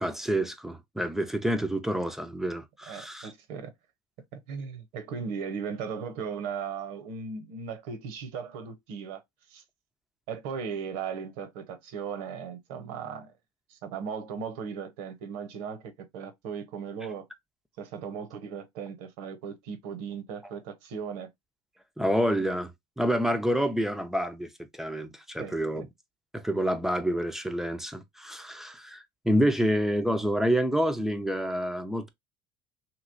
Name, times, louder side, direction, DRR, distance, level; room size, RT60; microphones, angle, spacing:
voice 1, 0.0-3.3 22.0-22.7 23.0-25.8 26.3-32.1, equal, 5° right, 0.5 m, -28 dB
voice 2, 2.9-3.7 4.3-9.2 9.5-9.6 10.3-13.3 13.7-17.3 17.8-21.3 25.4-25.8, right 6 dB, 80° right, 0.8 m, -37 dB
3.0 x 2.8 x 2.5 m
supercardioid pair, 100°, 11 cm